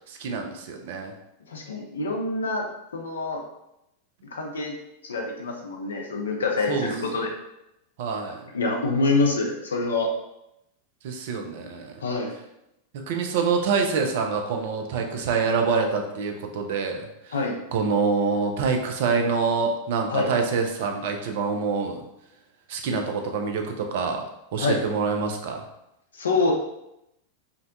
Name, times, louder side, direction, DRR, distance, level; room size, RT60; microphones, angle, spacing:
voice 1, 0.1-1.1 6.7-6.9 8.0-8.4 11.0-12.0 12.9-17.4 17.7-22.0 22.7-24.2 24.5-25.6, right 5 dB, 50° right, 3 dB, 0.4 m, -26 dB
voice 2, 1.5-3.4 4.3-4.7 5.0-7.3 8.5-10.1 12.0-12.3 17.3-17.6 20.1-20.3 24.6-24.8 26.1-26.5, left 3 dB, 70° left, 1 dB, 0.4 m, -26 dB
2.5 x 2.1 x 2.5 m, 0.84 s
figure-of-eight pair, 90°, 0 cm